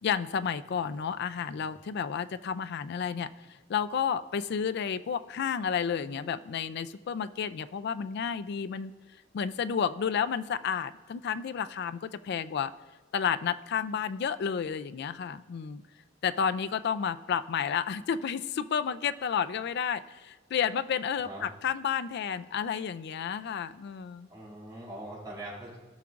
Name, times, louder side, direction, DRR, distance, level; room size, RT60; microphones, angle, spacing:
voice 1, 0.0-3.3 3.7-8.9 9.3-12.7 13.1-15.8 16.2-24.3, left 7 dB, 60° left, 13 dB, 0.3 m, -31 dB
voice 2, 21.1-21.5 24.3-25.8, right 1 dB, 20° right, -6 dB, 2.7 m, -43 dB
16.5 x 5.7 x 2.5 m, 1.3 s
head